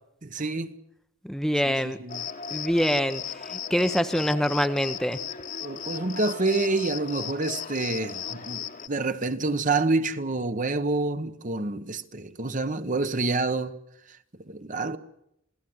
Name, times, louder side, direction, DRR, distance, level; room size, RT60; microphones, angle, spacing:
voice 1, 0.2-0.8 1.6-2.2 5.6-13.8 14.1-15.0, right 3 dB, 40° right, 1.1 m, -28 dB
voice 2, 1.2-2.0 2.5-5.2, equal, ahead, 0.8 m, -25 dB
Cricket, 2.1-8.9, left 7 dB, 40° left, 1.4 m, -36 dB
27.5 x 17.5 x 7.9 m
head